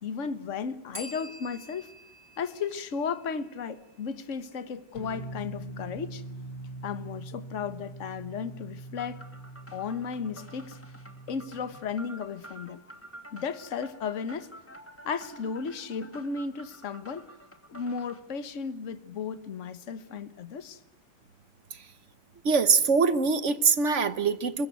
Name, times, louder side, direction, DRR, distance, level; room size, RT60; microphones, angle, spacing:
voice 1, 0.0-1.9 2.4-6.2 6.8-9.2 9.7-10.8 11.3-12.8 13.3-14.5 15.0-17.3 17.7-20.8, left 6 dB, 40° left, 1.5 m, -34 dB
Bell, 0.9-3.7, equal, 10° right, 2.5 m, -47 dB
sound 1, 4.9-11.8, right 2 dB, 60° left, 3.6 m, -43 dB
sound 2, 9.0-18.2, right 1 dB, 5° left, 2.1 m, -49 dB
voice 2, 22.4-24.7, right 5 dB, 45° right, 1.2 m, -23 dB
24.0 x 21.5 x 9.3 m
omnidirectional pair, 2.2 m